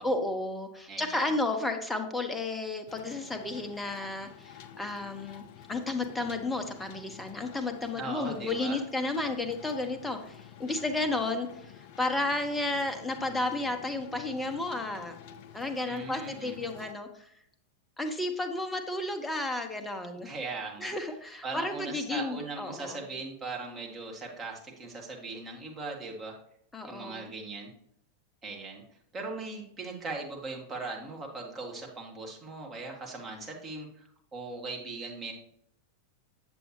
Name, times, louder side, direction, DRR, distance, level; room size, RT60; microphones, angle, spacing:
voice 1, 0.0-5.4 5.7-15.2 15.5-17.3 18.0-20.3 20.8-23.0 26.7-27.3, left 2 dB, 10° left, 6 dB, 1.0 m, -32 dB
voice 2, 0.9-1.3 8.0-8.8 15.9-16.6 20.2-20.9 21.4-26.4 26.8-27.7 28.4-28.8 29.1-34.0 34.3-35.3, right 3 dB, 20° right, 0 dB, 1.8 m, -39 dB
sound 1, 2.9-16.9, left 8 dB, 45° left, 0.5 m, -50 dB
7.9 x 7.7 x 3.1 m, 0.70 s
figure-of-eight pair, 90°, 0 cm